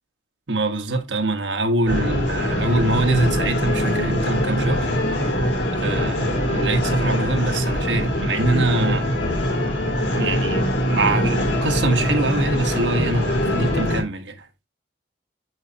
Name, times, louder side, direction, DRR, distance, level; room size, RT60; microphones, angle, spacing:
voice 1, 0.5-5.2 5.7-6.2 6.6-9.1 10.1-14.5, right 2 dB, 85° right, 1.4 m, -24 dB
sound 1, 1.9-14.0, equal, 80° left, 3.4 m, -22 dB
7.8 x 6.4 x 2.9 m
head